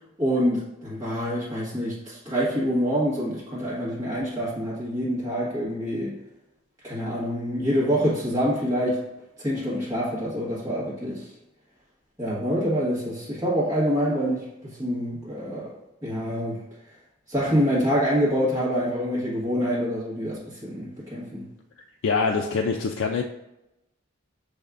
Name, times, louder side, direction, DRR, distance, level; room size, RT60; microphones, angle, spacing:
voice 1, 0.2-6.1 6.8-9.0 9.4-11.2 12.2-15.8 16.0-16.6 17.3-21.4, equal, 15° right, -8 dB, 1.4 m, -26 dB
voice 2, 22.0-23.2, left 4 dB, 70° left, 3 dB, 0.3 m, -24 dB
6.2 x 3.4 x 2.5 m, 0.91 s
head